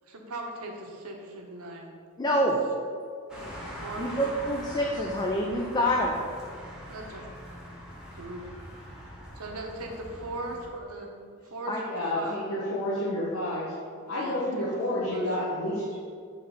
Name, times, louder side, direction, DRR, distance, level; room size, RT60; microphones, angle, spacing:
voice 1, 0.0-1.9 2.3-2.5 3.3-4.2 6.9-7.3 8.2-8.4 9.3-11.1 11.4-12.4 14.0-14.7 14.9-15.4, right 2 dB, 80° right, 1 dB, 0.9 m, -39 dB
voice 2, 2.2-2.6 4.0-6.1 11.7-11.8, equal, 20° left, 0 dB, 0.4 m, -26 dB
sound 1, 3.3-10.7, equal, 5° right, 1.1 m, -43 dB
voice 3, 11.9-13.7 14.1-16.0, left 1 dB, 80° left, -8 dB, 1.1 m, -30 dB
5.6 x 3.3 x 5.4 m, 2.2 s
head